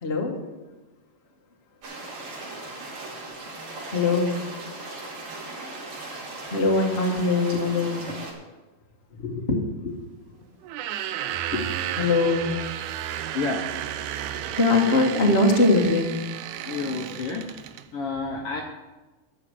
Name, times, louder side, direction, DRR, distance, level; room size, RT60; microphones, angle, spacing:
voice 1, 0.0-0.4 3.9-4.4 6.5-8.1 9.2-9.9 11.5-11.6 12.0-12.5 14.5-16.1, left 2 dB, 40° left, 1 dB, 0.8 m, -22 dB
sound 1, 1.8-8.3, right 2 dB, 60° right, 3.6 m, -38 dB
sound 2, 10.6-17.9, right 11 dB, 80° right, 2.1 m, -33 dB
voice 2, 16.7-17.5 17.9-18.6, left 4 dB, 70° left, 1 dB, 1.4 m, -29 dB
11.5 x 5.9 x 8.0 m, 1.1 s
omnidirectional pair, 3.7 m